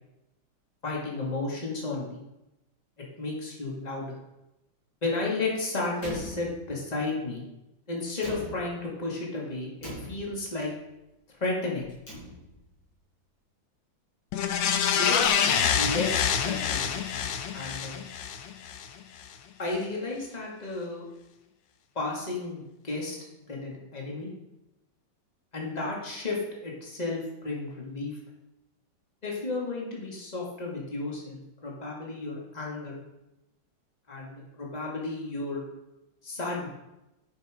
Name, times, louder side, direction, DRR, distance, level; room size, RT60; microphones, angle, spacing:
voice 1, 0.8-2.2 3.2-4.2 5.0-7.4 7.9-10.7 11.4-11.9 14.9-18.0 19.6-21.1 22.0-23.2 23.5-24.3 25.5-28.2 29.2-33.0 34.1-35.6 36.2-36.7, left 3 dB, 20° left, -2 dB, 2.1 m, -33 dB
Slam, 6.0-7.1 8.1-9.0 9.8-10.7 11.8-12.8, left 1 dB, 55° left, 5.1 m, -42 dB
Echoes Of Eternity, 14.3-18.9 19.3-19.4, left 8 dB, 75° left, 1.5 m, -26 dB
11.5 x 5.8 x 5.0 m, 0.93 s
omnidirectional pair, 2.1 m